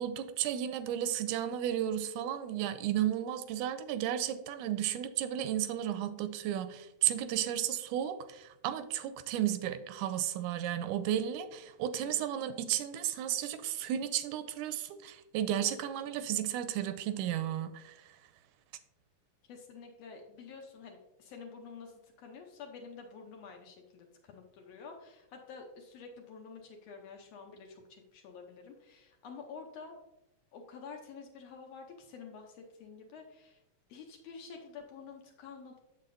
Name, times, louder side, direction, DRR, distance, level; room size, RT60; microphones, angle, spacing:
voice 1, 0.0-17.9, right 11 dB, 90° right, 11 dB, 2.0 m, -33 dB
voice 2, 19.5-30.0 30.5-33.6 33.9-35.8, left 5 dB, 70° left, 2 dB, 1.6 m, -49 dB
7.4 x 7.4 x 2.6 m, 0.95 s
omnidirectional pair, 3.4 m